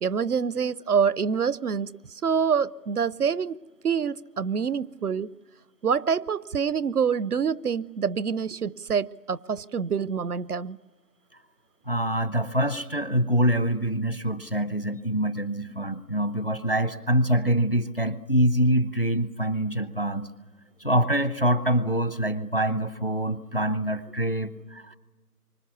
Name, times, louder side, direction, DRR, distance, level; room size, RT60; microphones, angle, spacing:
voice 1, 0.0-3.6 3.8-5.3 5.8-10.8, right 6 dB, 75° right, 21 dB, 0.7 m, -26 dB
voice 2, 11.9-20.3 20.8-25.0, right 1 dB, 35° left, 15 dB, 0.7 m, -25 dB
27.5 x 25.0 x 7.0 m, 1.3 s
figure-of-eight pair, 180°, 46 cm